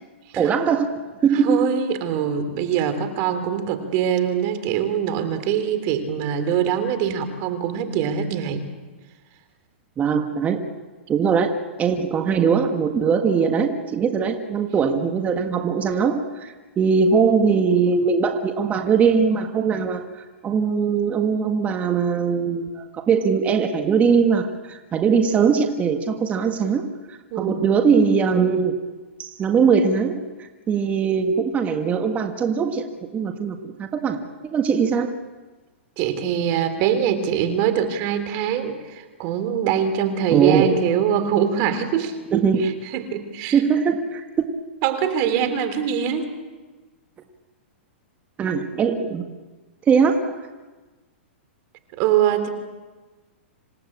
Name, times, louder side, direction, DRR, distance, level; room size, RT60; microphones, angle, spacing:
voice 1, 0.4-0.9 1.2-1.7 10.0-10.6 11.1-28.8 29.2-30.2 30.7-32.9 33.1-34.2 34.5-35.1 40.3-40.8 42.3-42.6 43.5-44.4 48.4-49.2 49.9-50.4, right 6 dB, 20° right, 5 dB, 1.7 m, -21 dB
voice 2, 1.3-8.7 27.3-27.6 36.0-43.6 44.8-46.2 52.0-52.5, right 8 dB, 45° right, 9 dB, 3.3 m, -23 dB
27.0 x 17.5 x 8.7 m, 1.3 s
hypercardioid pair, 125°, 7 cm